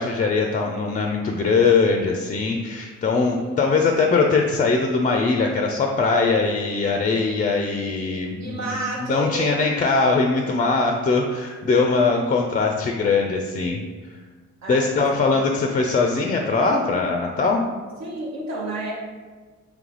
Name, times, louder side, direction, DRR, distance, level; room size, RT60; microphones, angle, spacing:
voice 1, 0.0-8.8 9.1-13.8 14.7-17.6, left 4 dB, 30° left, 2 dB, 0.3 m, -21 dB
voice 2, 3.1-4.1 8.4-9.5 14.6-15.0 15.3-15.8 18.0-18.9, right 2 dB, 60° right, -3 dB, 0.8 m, -32 dB
3.2 x 3.2 x 3.8 m, 1.4 s
cardioid pair, 90°, 30 cm